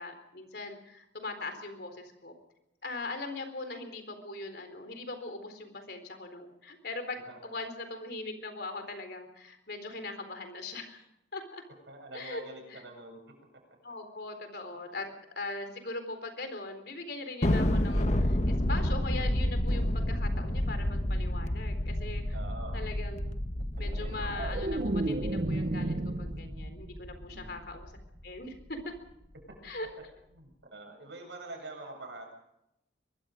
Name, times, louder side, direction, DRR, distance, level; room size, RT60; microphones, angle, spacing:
voice 1, 0.0-2.3 2.8-11.0 11.3-11.6 12.1-12.4 12.7-12.8 13.8-15.1 15.4-22.4 22.7-23.5 23.8-27.9 28.2-28.5 28.9-29.0 29.6-29.9, left 2 dB, 55° left, 7 dB, 4.0 m, -40 dB
voice 2, 11.9-13.3 13.9-14.0 14.9-15.0 22.3-22.8 27.3-27.6 30.3-32.3, right 2 dB, 70° right, 3 dB, 7.7 m, -45 dB
Thunder, 17.4-28.1, left 1 dB, 40° left, 1.3 m, -30 dB
sound 1, 23.8-27.0 27.3-27.7, right 2 dB, 45° right, 0.7 m, -33 dB
23.5 x 23.0 x 5.2 m, 0.83 s
head